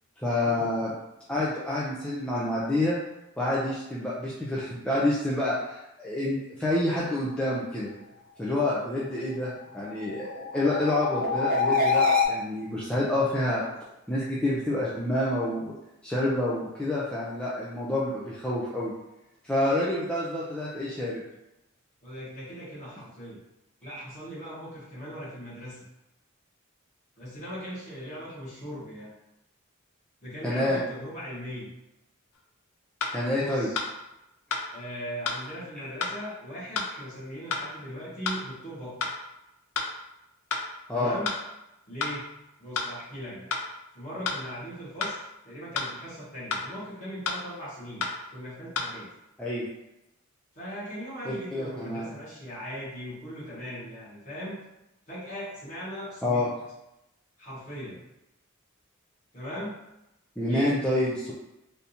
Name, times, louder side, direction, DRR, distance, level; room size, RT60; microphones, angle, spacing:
voice 1, 0.2-1.0 1.3-3.0 3.4-7.9 8.4-13.6 14.1-15.7 16.0-18.9 19.4-21.2 23.8-24.0 30.4-30.8 33.1-33.7 35.8-35.9 40.9-41.2 49.4-49.7 51.3-52.1 56.2-56.5 60.4-61.3, left 1 dB, 5° left, -7 dB, 0.4 m, -28 dB
sound 1, 9.9-12.3, left 4 dB, 45° right, 0.6 m, -25 dB
voice 2, 22.0-23.4 23.8-25.8 27.2-29.1 30.2-31.7 33.4-33.8 34.7-39.0 40.9-41.3 41.9-42.3 42.6-43.5 43.9-49.1 50.5-54.6 55.1-56.5 57.4-58.0 59.3-59.8 60.4-60.7, equal, 35° left, -8 dB, 1.4 m, -39 dB
sound 2, 32.3-32.4 33.0-33.1 33.7-33.9 34.5-34.6 35.2-35.4 36.0-36.1 36.7-36.9 37.5-37.6 38.2-38.4 39.0-39.1 39.7-39.9 40.5-40.6 41.2-41.4 42.0-42.1 42.7-42.9 43.5-43.6 44.2-44.4 45.0-45.1 45.7-45.9 46.5-46.6 47.2-47.4 48.0-48.1 48.7-48.9, left 4 dB, 90° left, 0.5 m, -29 dB
3.4 x 2.7 x 2.7 m, 0.90 s
head